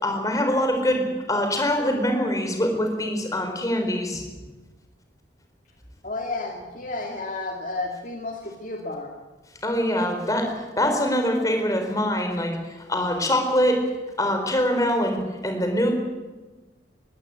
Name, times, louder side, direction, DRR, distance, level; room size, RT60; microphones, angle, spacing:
voice 1, 0.0-4.2 9.6-12.6 12.9-13.8 14.2-15.9, left 1 dB, 20° left, 4 dB, 4.4 m, -24 dB
voice 2, 6.0-9.1, left 2 dB, 45° left, 1 dB, 2.3 m, -32 dB
22.0 x 16.5 x 8.8 m, 1.2 s
head